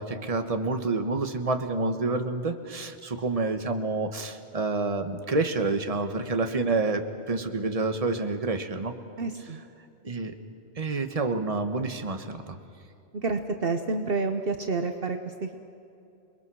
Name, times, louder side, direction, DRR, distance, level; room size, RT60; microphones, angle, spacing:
voice 1, 0.0-9.0 10.0-10.3 10.8-12.6, right 3 dB, 35° right, 7 dB, 1.4 m, -28 dB
voice 2, 9.2-9.6 13.1-15.6, right 3 dB, 55° right, 6 dB, 1.2 m, -29 dB
28.5 x 21.5 x 6.3 m, 2.6 s
omnidirectional pair, 1.2 m